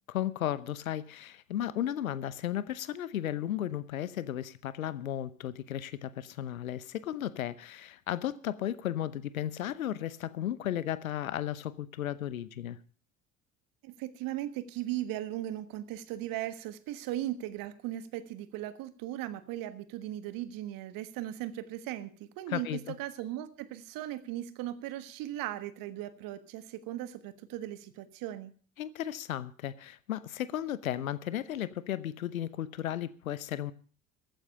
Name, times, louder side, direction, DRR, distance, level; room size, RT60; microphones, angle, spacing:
voice 1, 0.1-12.8 22.5-22.9 28.8-33.7, left 11 dB, 80° left, 0.9 m, -35 dB
voice 2, 13.8-28.5, right 13 dB, 55° right, 1.5 m, -38 dB
14.5 x 9.0 x 6.5 m
figure-of-eight pair, 65°, 41 cm